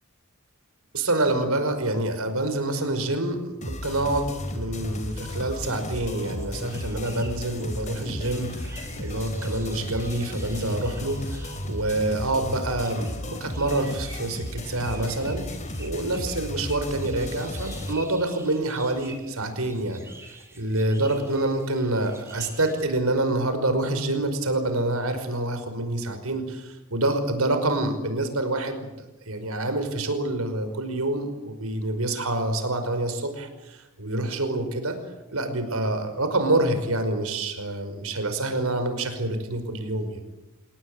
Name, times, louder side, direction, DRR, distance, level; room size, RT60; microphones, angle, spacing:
voice 1, 0.9-15.4 15.8-28.9 29.3-35.0 35.3-40.2, right 2 dB, 80° right, 8 dB, 5.4 m, -27 dB
sound 1, 3.6-17.9, left 1 dB, 35° left, 3.3 m, -34 dB
sound 2, 6.1-22.8, right 2 dB, 10° right, 7.8 m, -48 dB
28.5 x 19.0 x 9.0 m, 1.1 s
head